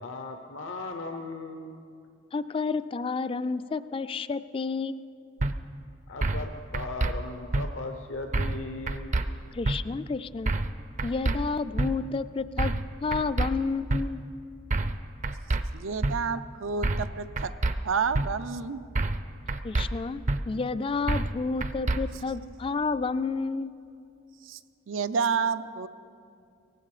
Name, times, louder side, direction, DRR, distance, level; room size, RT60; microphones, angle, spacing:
voice 1, 0.0-1.8 6.1-9.1, left 2 dB, 80° left, 5 dB, 0.8 m, -37 dB
voice 2, 2.3-5.0 9.5-10.5 11.0-12.7 13.0-14.2 19.6-23.7, left 4 dB, 25° left, 14 dB, 0.3 m, -30 dB
sound 1, 5.4-5.5 6.2-6.5 6.7-7.1 7.5-7.7 8.3-8.6 8.9-9.3 9.7-9.8 10.5-10.7 11.0-11.4 11.8-11.9 12.6-12.8 13.1-13.5 13.9-14.0 14.7-15.0 15.2-15.6 16.0-16.1 16.8-17.1 17.4-17.7 18.1-18.3 19.0-19.2 19.5-19.9 20.3-20.4 21.1-21.3 21.6-22.0, right 2 dB, 40° right, 0.5 m, -26 dB
voice 3, 15.7-17.5 17.8-18.8 24.4-24.6 24.9-25.9, right 5 dB, 85° right, 12 dB, 0.5 m, -29 dB
18.5 x 15.5 x 4.9 m, 2.5 s
head